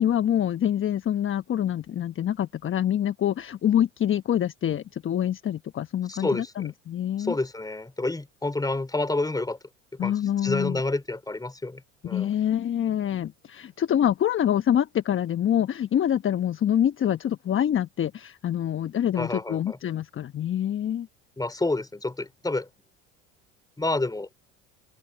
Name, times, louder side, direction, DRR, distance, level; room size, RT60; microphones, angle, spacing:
voice 1, 0.0-7.3 10.0-10.8 12.0-21.1, left 10 dB, 35° left, 1.2 m, -26 dB
voice 2, 6.1-6.5 7.2-9.6 10.0-10.1 10.4-12.3 19.2-19.8 21.4-22.7 23.8-24.3, left 2 dB, 10° left, 3.6 m, -29 dB
open air
hypercardioid pair, 75°, 36 cm